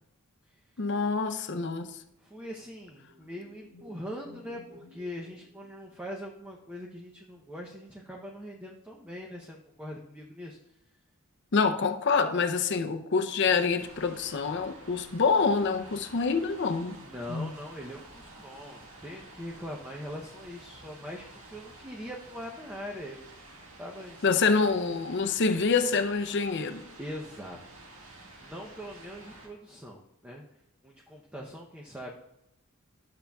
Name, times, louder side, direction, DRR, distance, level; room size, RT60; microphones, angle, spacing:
voice 1, 0.8-2.0 11.5-17.0 17.3-17.5 24.2-26.8, left 4 dB, 55° left, 0.5 m, -26 dB
voice 2, 2.2-10.6 17.0-23.3 23.8-24.4 27.0-27.8 28.4-30.5 30.8-32.1, equal, 5° right, 0.6 m, -42 dB
sound 1, 2.8-6.3, left 1 dB, 45° right, 2.5 m, -55 dB
sound 2, 13.8-29.5, right 2 dB, 70° right, 1.8 m, -50 dB
12.5 x 7.0 x 2.3 m
head